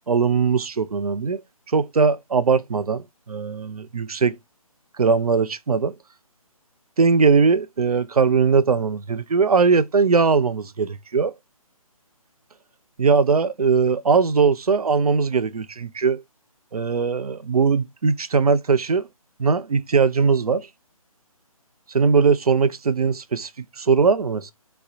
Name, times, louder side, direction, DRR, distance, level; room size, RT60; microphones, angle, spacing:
voice 1, 0.1-1.4 1.7-4.4 5.0-5.9 7.0-11.3 13.0-16.2 16.7-19.1 19.4-20.7 21.9-23.5 23.8-24.5, right 5 dB, 80° right, 0.4 m, -20 dB
3.2 x 2.2 x 2.7 m
figure-of-eight pair, 145°, 19 cm